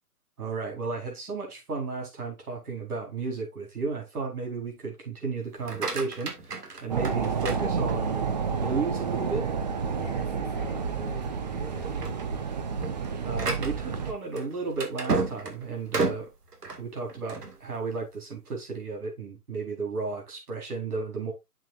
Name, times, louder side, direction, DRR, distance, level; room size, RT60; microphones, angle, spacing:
voice 1, 0.4-9.5 13.2-16.3 16.8-21.3, right 4 dB, 70° right, 4.4 m, -34 dB
sound 1, 5.5-8.3 8.8-9.3 9.7-9.8 10.2-10.4 11.1-11.4 11.7-17.6, right 4 dB, 85° right, 2.2 m, -33 dB
sound 2, 6.9-14.1, right 5 dB, 30° right, 0.7 m, -30 dB
voice 2, 9.9-12.2, left 2 dB, 5° left, 1.7 m, -44 dB
7.4 x 7.1 x 2.5 m
hypercardioid pair, 155°, 45 cm